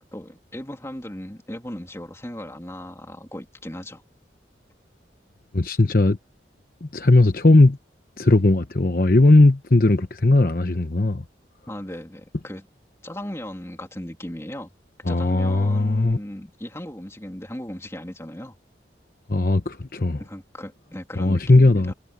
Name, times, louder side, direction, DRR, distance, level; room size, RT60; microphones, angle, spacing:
voice 1, 0.1-4.0 11.7-12.7 13.0-14.7 15.1-18.5 20.2-21.9, left 1 dB, 15° left, 2.9 m, -36 dB
voice 2, 5.5-6.2 6.8-7.8 8.2-11.2 15.0-16.2 19.3-20.2 21.2-21.9, left 2 dB, 50° left, 1.0 m, -18 dB
head